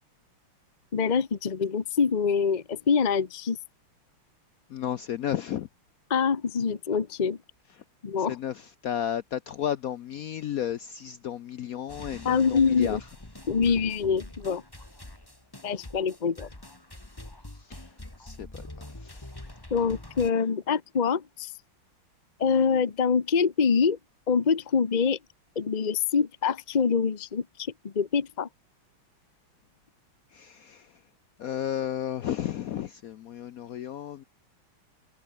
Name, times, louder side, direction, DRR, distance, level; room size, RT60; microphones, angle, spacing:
voice 1, 0.9-3.6 6.1-7.4 8.0-8.4 12.2-13.0 13.5-14.6 15.6-16.5 19.7-21.5 22.4-24.0 24.3-25.2 25.6-28.5, left 6 dB, 50° left, 0.5 m, -25 dB
voice 2, 4.7-5.7 8.3-13.0 17.7-17.8 18.2-18.7 19.0-19.2 30.3-30.9 31.4-34.2, left 10 dB, 80° left, 0.7 m, -33 dB
sound 1, 11.9-20.3, left 1 dB, 10° left, 2.2 m, -44 dB
omnidirectional pair, 2.3 m